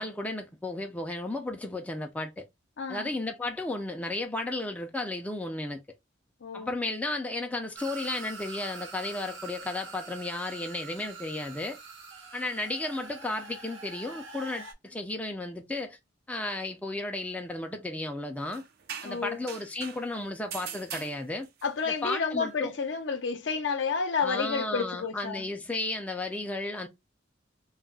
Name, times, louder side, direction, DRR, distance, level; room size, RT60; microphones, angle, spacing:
voice 1, 0.0-2.4 2.9-5.8 6.5-11.8 12.3-16.0 16.3-18.7 19.0-21.5 21.9-22.7 24.2-26.9, left 2 dB, 10° left, 0.3 m, -34 dB
voice 2, 2.8-3.1 6.4-6.7 19.0-19.4 21.6-25.4, left 5 dB, 70° left, 0.6 m, -30 dB
sound 1, 7.8-14.7, right 4 dB, 75° right, 0.8 m, -44 dB
sound 2, 18.5-20.1 20.5-21.7, right 7 dB, 55° right, 0.4 m, -41 dB
2.3 x 2.0 x 3.7 m
head